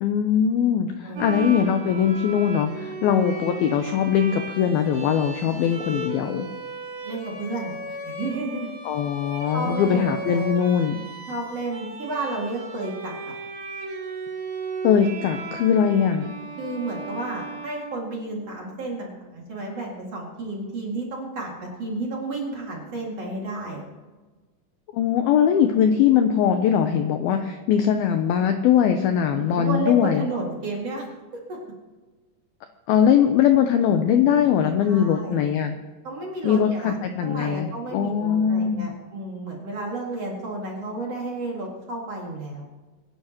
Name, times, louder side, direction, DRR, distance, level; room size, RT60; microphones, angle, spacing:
voice 1, 0.0-6.4 8.9-11.0 14.8-16.3 24.9-30.2 32.9-35.8 36.4-38.9, left 8 dB, 85° left, 6 dB, 2.1 m, -21 dB
Bowed string instrument, 1.2-18.6, right 3 dB, 70° right, 5.0 m, -36 dB
voice 2, 7.0-8.8 9.5-10.4 11.3-13.3 16.6-23.8 29.3-31.0 31.5-31.6 34.8-35.4 36.0-42.6, right 2 dB, 45° right, -2 dB, 2.6 m, -32 dB
25.0 x 10.5 x 3.0 m, 1.3 s
omnidirectional pair, 5.2 m